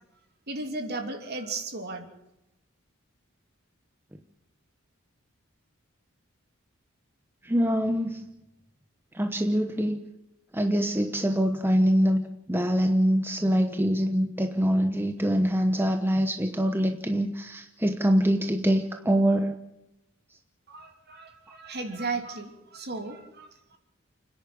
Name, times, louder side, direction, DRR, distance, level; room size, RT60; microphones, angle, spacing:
voice 1, 0.5-2.1 20.7-23.8, right 3 dB, 50° right, 5 dB, 3.0 m, -35 dB
voice 2, 7.4-8.2 9.1-10.0 10.5-19.5, equal, 10° right, 5 dB, 1.0 m, -24 dB
29.5 x 10.5 x 8.6 m, 0.89 s
head